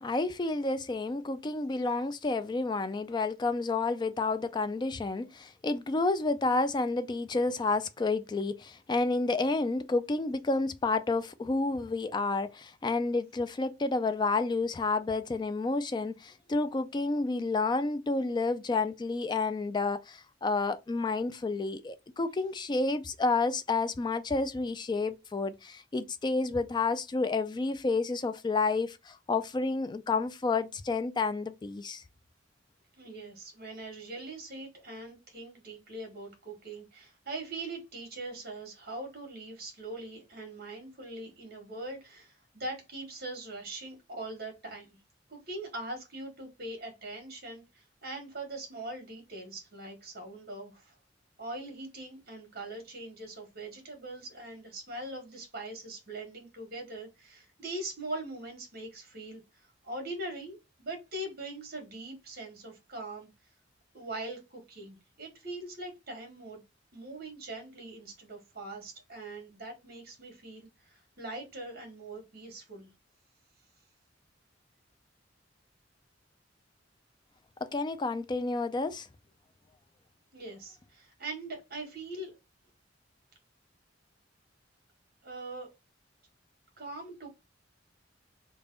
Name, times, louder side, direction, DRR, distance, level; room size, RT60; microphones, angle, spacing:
voice 1, 0.0-32.0 77.6-79.1, left 3 dB, 25° left, 0.3 m, -30 dB
voice 2, 33.0-44.9 45.3-50.9 51.4-63.3 63.9-66.6 66.9-72.9 80.3-82.4 85.2-85.7 86.8-87.3, right 2 dB, 55° right, 1.4 m, -42 dB
3.4 x 2.2 x 3.8 m
head